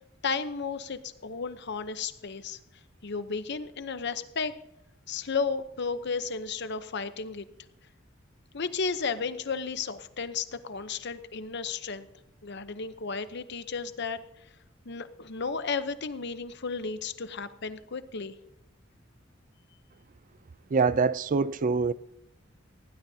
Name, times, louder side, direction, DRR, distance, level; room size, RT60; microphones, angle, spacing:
voice 1, 0.2-2.6 3.0-4.5 5.1-7.5 8.5-12.1 12.4-14.2 14.8-18.3, left 5 dB, 60° left, 0.8 m, -33 dB
voice 2, 20.7-21.9, right 4 dB, 40° right, 0.4 m, -24 dB
19.5 x 16.0 x 2.8 m
head